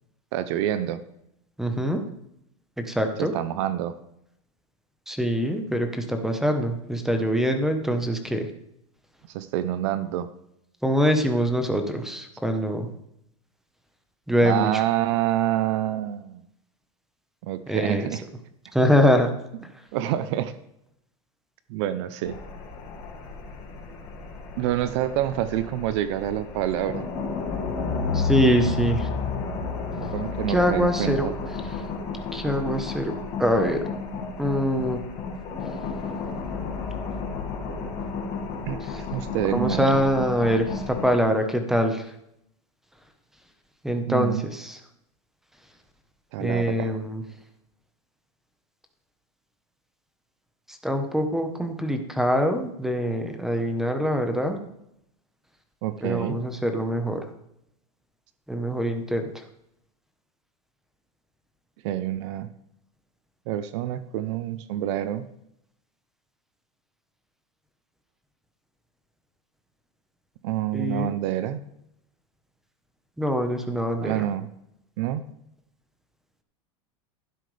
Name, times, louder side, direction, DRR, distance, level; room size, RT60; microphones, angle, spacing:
voice 1, 0.3-1.0 3.2-4.0 9.3-10.3 14.4-16.4 17.4-18.2 19.9-20.5 21.7-22.4 24.6-27.1 29.9-31.3 38.7-40.0 44.1-44.5 46.3-47.0 55.8-56.4 61.8-62.5 63.5-65.3 70.4-71.6 74.0-74.5 75.0-75.2, right 12 dB, 55° right, 13 dB, 0.7 m, -27 dB
voice 2, 1.6-2.0 2.8-3.3 5.1-8.5 10.8-12.9 14.3-14.8 17.7-18.1 18.7-19.3 28.1-29.1 30.5-31.3 32.3-33.1 33.4-33.8 34.4-35.0 39.5-42.0 43.8-44.8 46.4-47.2 50.7-54.6 56.0-57.2 58.5-59.4 70.7-71.1 73.2-74.2, equal, ahead, 6 dB, 1.1 m, -24 dB
sound 1, 22.3-41.2, left 4 dB, 40° left, 2.0 m, -32 dB
12.0 x 10.0 x 3.4 m, 0.78 s
supercardioid pair, 145°, 17 cm